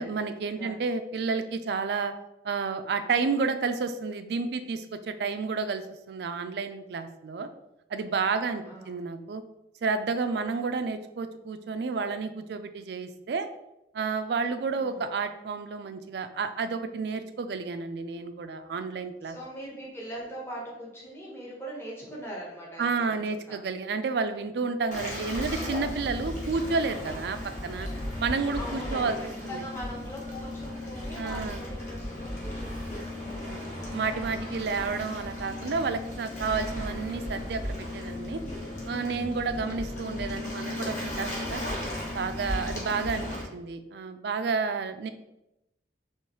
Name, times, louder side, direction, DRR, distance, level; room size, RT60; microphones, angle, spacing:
voice 1, 0.0-2.1 2.4-7.5 7.9-9.4 9.8-13.5 13.9-19.4 22.8-27.9 28.2-29.2 29.4-29.6 31.2-31.6 33.3-33.6 33.9-38.4 38.9-41.6 42.1-45.1, right 4 dB, 60° right, 9 dB, 0.3 m, -31 dB
voice 2, 8.6-9.0 14.7-15.1 19.2-23.6 28.6-34.0 43.2-43.5, right 1 dB, 15° left, -4 dB, 1.0 m, -42 dB
Waves surf, 24.9-43.4, left 1 dB, 40° left, 1.1 m, -35 dB
4.6 x 3.1 x 3.0 m, 0.90 s
head